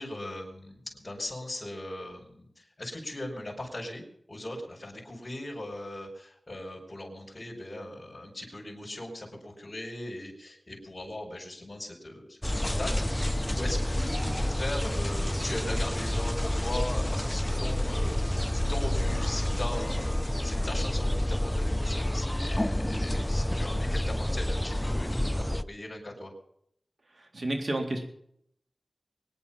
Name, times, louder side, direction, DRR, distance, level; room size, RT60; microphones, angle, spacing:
voice 1, 0.0-26.3, left 1 dB, 40° left, -4 dB, 4.8 m, -39 dB
sound 1, 12.4-25.6, left 1 dB, 10° left, 0.6 m, -29 dB
voice 2, 27.1-28.0, right 1 dB, 65° right, 3 dB, 3.5 m, -31 dB
23.0 x 10.0 x 5.7 m, 0.70 s
wide cardioid pair, 70°, 0 cm